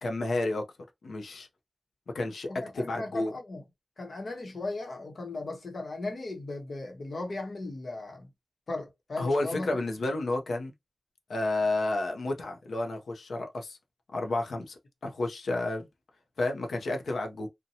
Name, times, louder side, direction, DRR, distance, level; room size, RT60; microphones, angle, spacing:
voice 1, 0.0-0.6 1.0-1.5 2.1-2.5 2.8-3.3 9.2-10.7 11.3-13.8 14.1-15.9 16.4-17.5, left 2 dB, 85° left, 0.6 m, -31 dB
voice 2, 2.5-3.6 4.0-8.3 8.7-9.7, left 2 dB, 65° left, 0.9 m, -37 dB
2.7 x 2.1 x 2.7 m
wide cardioid pair, 80°, 0 cm